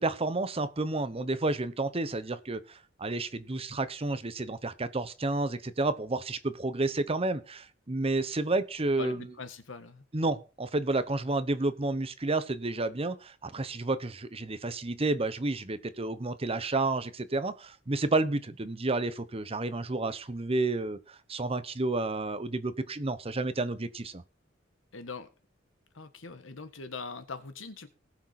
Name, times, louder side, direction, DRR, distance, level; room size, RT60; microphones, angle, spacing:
voice 1, 0.0-9.3 10.1-24.2, right 2 dB, 30° right, 0.9 m, -31 dB
voice 2, 9.0-10.0 24.9-25.3 25.9-27.9, left 4 dB, 85° left, 1.5 m, -42 dB
19.0 x 6.5 x 4.2 m
head